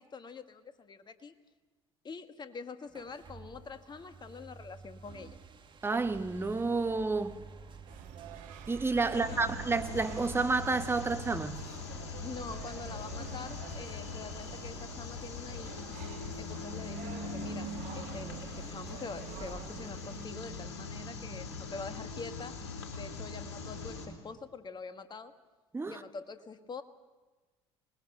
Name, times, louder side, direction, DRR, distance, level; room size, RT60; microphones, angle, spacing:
voice 1, 0.0-1.3 2.0-5.4 9.1-9.5 12.2-15.9 16.4-17.7 17.9-22.5 22.9-25.3 25.8-26.8, left 4 dB, 30° left, 1.7 m, -45 dB
sound 1, 2.9-21.4, right 5 dB, 35° right, 1.9 m, -51 dB
voice 2, 5.8-7.4 8.7-11.6 25.7-26.0, right 3 dB, 15° right, 1.2 m, -30 dB
sound 2, 7.9-20.3, right 9 dB, 60° right, 1.6 m, -50 dB
sound 3, 9.1-24.1, left 4 dB, 75° left, 3.6 m, -42 dB
26.0 x 20.0 x 6.7 m
hypercardioid pair, 65°, 14 cm